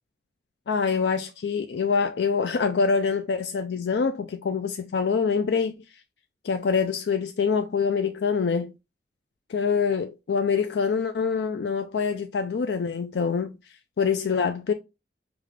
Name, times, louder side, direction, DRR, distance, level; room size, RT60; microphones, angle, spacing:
voice 1, 0.7-5.7 6.4-8.7 9.5-13.6 14.0-14.7, left 5 dB, 75° left, 0.4 m, -25 dB
5.1 x 2.4 x 3.1 m
head